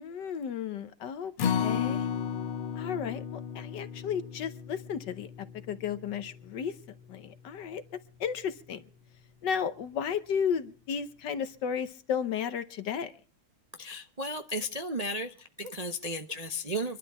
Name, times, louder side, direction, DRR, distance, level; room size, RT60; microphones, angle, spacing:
voice 1, 0.0-2.1 2.7-5.3 5.7-6.7 7.1-7.8 8.2-8.8 9.4-13.1, left 7 dB, 60° left, 1.5 m, -33 dB
Acoustic guitar, 1.4-7.7 8.1-8.2 8.6-8.7, left 7 dB, 85° left, 1.9 m, -35 dB
voice 2, 13.8-17.0, equal, 70° right, 0.3 m, -34 dB
25.0 x 12.0 x 4.2 m
omnidirectional pair, 2.3 m